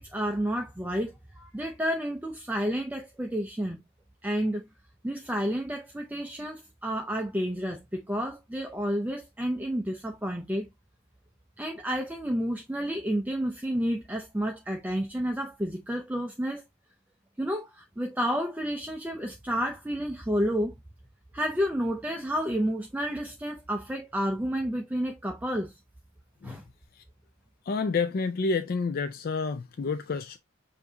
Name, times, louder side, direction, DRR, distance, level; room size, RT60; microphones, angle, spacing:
voice 1, 0.0-3.8 4.2-4.6 5.0-10.7 11.6-16.6 17.4-20.7 21.3-25.7 26.4-26.6, equal, 10° right, 0.5 m, -30 dB
voice 2, 27.6-30.4, left 4 dB, 45° left, 0.4 m, -29 dB
6.9 x 2.7 x 2.8 m
head